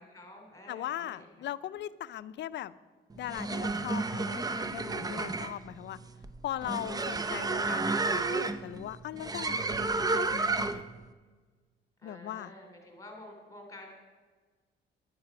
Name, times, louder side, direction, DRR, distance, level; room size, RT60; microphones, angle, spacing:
voice 1, 0.0-1.5 5.1-5.4 6.9-7.0 12.0-13.9, left 1 dB, 15° left, 1 dB, 3.0 m, -50 dB
voice 2, 0.7-2.8 3.1-6.0 6.4-10.8 12.0-12.5, left 12 dB, 65° left, 16 dB, 0.5 m, -39 dB
sound 1, 3.1-11.0, right 3 dB, 20° right, 0.6 m, -31 dB
11.5 x 8.7 x 6.0 m, 1.4 s
cardioid pair, 90°, 20 cm